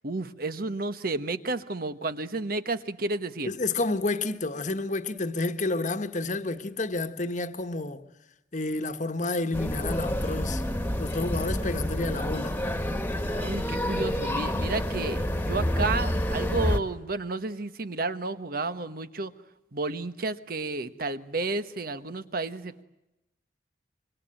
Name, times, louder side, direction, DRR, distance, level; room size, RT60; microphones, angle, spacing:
voice 1, 0.0-3.5 13.3-19.3 19.7-22.8, right 3 dB, 55° right, 1.2 m, -31 dB
voice 2, 3.5-8.0 8.5-10.6 11.0-12.5, left 2 dB, 45° left, 1.4 m, -30 dB
sound 1, 9.5-16.8, equal, 10° left, 1.7 m, -28 dB
26.0 x 23.5 x 8.9 m
head